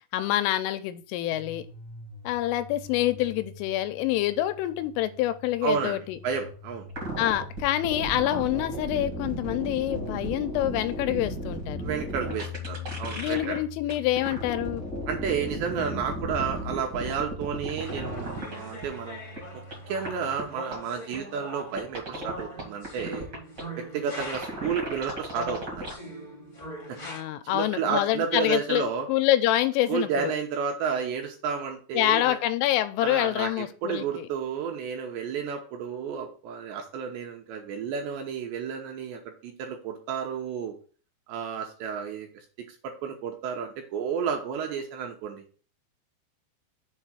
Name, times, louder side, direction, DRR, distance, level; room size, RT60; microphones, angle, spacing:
voice 1, 0.1-1.7 2.2-6.2 7.2-11.8 13.2-14.8 27.0-30.3 31.9-34.3, left 14 dB, 85° left, 11 dB, 3.1 m, -26 dB
sound 1, 1.3-20.5, left 4 dB, 70° left, 1.7 m, -43 dB
voice 2, 5.6-6.0 6.2-6.9 11.8-13.6 15.1-19.2 19.9-23.3 23.8-25.9 26.9-27.0 27.5-29.1 29.9-32.4 33.0-40.8 41.3-42.3 42.8-45.4, right 6 dB, 75° right, 2 dB, 2.7 m, -31 dB
sound 2, 6.9-13.6 13.9-18.6 18.8-18.9 19.4-19.5 19.7-19.8 20.0-20.1 20.4-20.5 20.7-20.8 21.1-21.2 21.8-23.6 24.2-25.9, right 1 dB, 55° right, 1.1 m, -35 dB
sound 3, 17.8-24.8 25.3-27.2, equal, 55° left, 0.5 m, -41 dB
7.2 x 3.3 x 6.1 m, 0.39 s
omnidirectional pair, 5.6 m